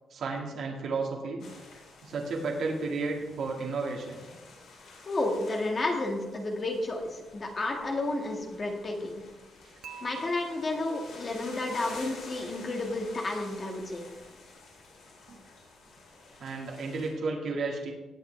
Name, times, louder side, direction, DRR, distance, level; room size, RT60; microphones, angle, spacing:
voice 1, 0.1-1.4 2.0-4.3 15.3-15.4 16.4-17.9, right 3 dB, 55° right, -1 dB, 2.0 m, -32 dB
sound 1, 1.4-17.1, left 3 dB, 75° left, 4.5 m, -50 dB
voice 2, 5.1-9.2 10.0-14.1, left 2 dB, 30° left, 2 dB, 1.9 m, -31 dB
Dishes pots and pans / Chink clink, 9.8-12.0, right 6 dB, 70° right, 1.1 m, -49 dB
18.0 x 8.3 x 3.4 m, 1.1 s
cardioid pair, 155°, 0 cm